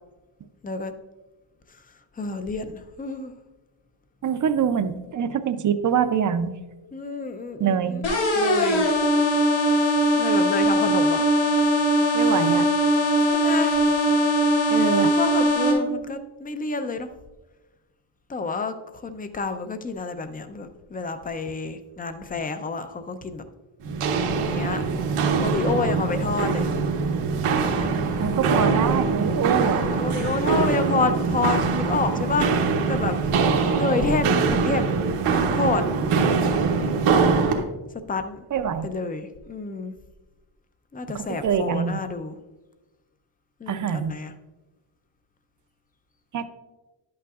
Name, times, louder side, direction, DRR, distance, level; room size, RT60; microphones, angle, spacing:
voice 1, 2.2-3.3 6.9-8.0 8.4-8.9 10.2-11.2 13.3-13.8 15.0-17.1 18.3-23.5 24.4-24.8 25.4-26.7 27.6-27.9 29.6-33.2 33.7-35.0 35.5-35.8 38.1-38.4 38.8-40.0 40.9-42.4 43.6-44.3, left 4 dB, 20° left, 9 dB, 0.3 m, -29 dB
voice 2, 4.2-6.5 7.6-8.0 12.1-12.7 14.7-15.1 28.2-29.9 32.1-32.2 38.5-38.9 41.1-42.0 43.7-44.1 46.3-46.5, right 8 dB, 40° right, 10 dB, 0.5 m, -24 dB
sound 1, 8.0-15.7, equal, 85° left, 3.0 m, -20 dB
Walk footsteps, 23.8-37.6, right 4 dB, 80° right, 1.0 m, -23 dB
11.0 x 8.5 x 2.4 m, 1.1 s
wide cardioid pair, 165°, 50 cm